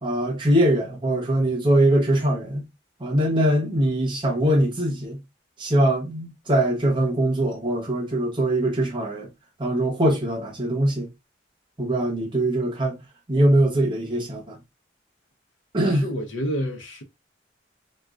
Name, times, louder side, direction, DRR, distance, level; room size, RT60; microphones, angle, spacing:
voice 1, 0.0-2.7 3.0-5.2 5.6-9.3 9.6-11.1 11.8-13.0 13.3-14.6 15.7-16.0, right 1 dB, 25° right, 0.8 m, -22 dB
voice 2, 15.9-17.0, equal, 90° left, 0.7 m, -29 dB
3.6 x 2.3 x 2.3 m
head